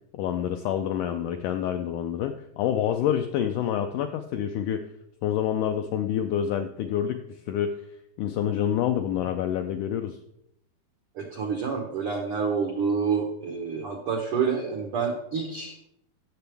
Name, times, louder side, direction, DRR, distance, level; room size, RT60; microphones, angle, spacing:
voice 1, 0.1-4.8 5.2-7.8 8.2-10.2, left 9 dB, 85° left, 7 dB, 1.8 m, -27 dB
voice 2, 11.2-15.8, right 5 dB, 80° right, 2 dB, 1.2 m, -28 dB
16.5 x 6.8 x 3.4 m, 0.78 s
omnidirectional pair, 4.2 m